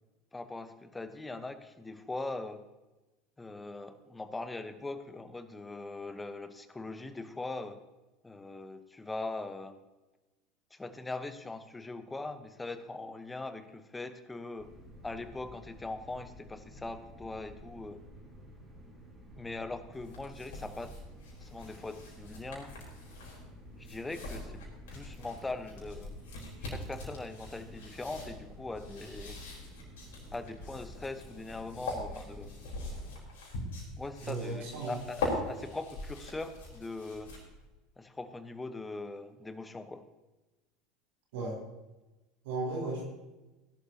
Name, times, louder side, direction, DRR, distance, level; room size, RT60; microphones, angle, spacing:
voice 1, 0.3-2.6 3.4-7.8 8.2-9.8 10.7-14.7 15.0-18.0 19.4-21.0 21.4-22.8 23.8-26.3 26.6-29.4 30.3-32.6 34.0-37.3 38.0-40.1, left 2 dB, 15° left, 10 dB, 1.1 m, -41 dB
sound 1, 14.6-33.1, equal, 20° right, 5.3 m, -52 dB
sound 2, 19.9-37.7, left 2 dB, 70° left, 4.2 m, -42 dB
voice 2, 34.2-34.9 41.3-41.6 42.4-43.0, right 2 dB, 65° right, -1 dB, 4.2 m, -35 dB
17.5 x 11.5 x 2.9 m, 1.1 s
figure-of-eight pair, 75°, 0 cm